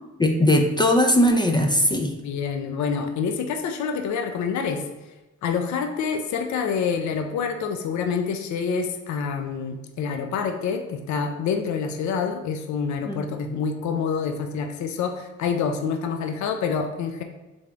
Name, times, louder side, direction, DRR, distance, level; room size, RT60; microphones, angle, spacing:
voice 1, 0.2-2.1 13.1-13.2, left 1 dB, 15° left, 3 dB, 0.4 m, -19 dB
voice 2, 2.2-4.8 5.4-17.2, left 6 dB, 70° left, 6 dB, 0.6 m, -27 dB
3.4 x 3.4 x 3.9 m, 1.1 s
cardioid pair, 90°, 30 cm